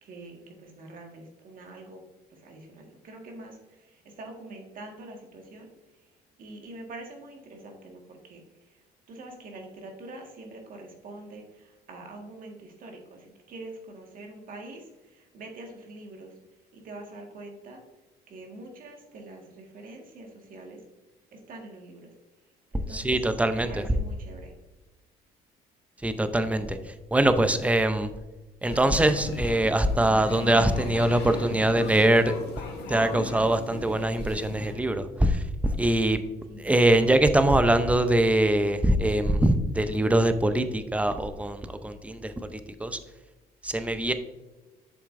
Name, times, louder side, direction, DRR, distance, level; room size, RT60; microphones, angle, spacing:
voice 1, 0.0-2.0 2.3-6.1 6.4-16.4 16.7-17.8 18.3-20.8 21.3-22.2 22.4-23.2 23.5-24.6 36.5-36.6, right 2 dB, 55° right, 2 dB, 1.7 m, -45 dB
voice 2, 22.9-23.8 26.0-28.1 28.6-32.3 32.9-36.2 36.6-43.0 43.6-44.1, right 1 dB, 10° right, 9 dB, 0.6 m, -23 dB
sound 1, 28.6-34.7, left 3 dB, 80° left, 2.0 m, -38 dB
8.2 x 6.7 x 2.6 m, 1.1 s
cardioid pair, 110°, 17 cm